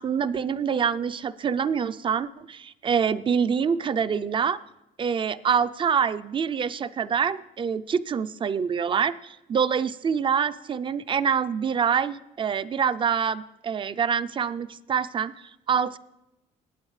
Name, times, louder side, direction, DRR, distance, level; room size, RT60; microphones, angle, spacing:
voice 1, 0.0-4.6 5.0-15.3 15.7-16.0, right 7 dB, 30° right, 15 dB, 0.4 m, -25 dB
19.0 x 8.0 x 3.2 m, 0.92 s
cardioid pair, 110°, 17 cm